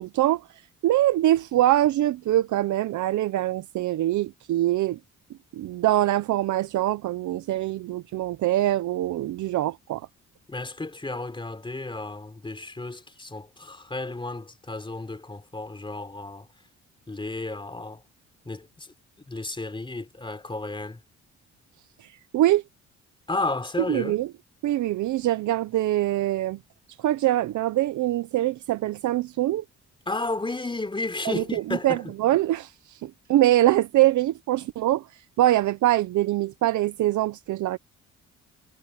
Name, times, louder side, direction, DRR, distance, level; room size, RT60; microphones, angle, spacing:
voice 1, 0.0-5.0 5.5-10.1 22.0-22.6 23.9-24.3 24.6-26.6 27.0-29.6 31.3-37.8, right 14 dB, 75° right, 0.8 m, -24 dB
voice 2, 10.5-16.5 17.1-18.0 18.5-18.9 19.3-21.0 23.3-24.1 30.1-32.0, left 2 dB, 15° left, 3.9 m, -32 dB
cardioid pair, 90°, 30 cm